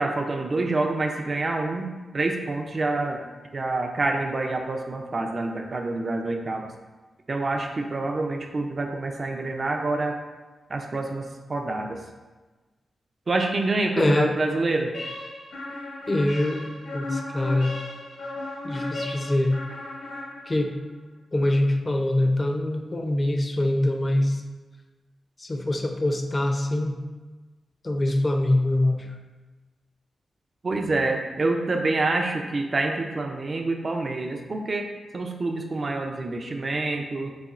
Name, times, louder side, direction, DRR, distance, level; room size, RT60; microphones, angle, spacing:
voice 1, 0.0-3.2 3.5-6.7 7.3-10.2 10.7-12.0 13.3-14.9 30.6-37.3, right 2 dB, 45° right, 3 dB, 0.4 m, -27 dB
voice 2, 14.0-14.4 16.1-17.7 18.6-19.6 20.5-20.8 21.3-24.4 25.4-27.0 27.8-29.1, left 1 dB, 35° left, 3 dB, 0.5 m, -24 dB
sound 1, 14.9-20.8, left 2 dB, 80° left, 1.2 m, -35 dB
4.1 x 3.6 x 2.4 m, 1.2 s
cardioid pair, 75°, 0 cm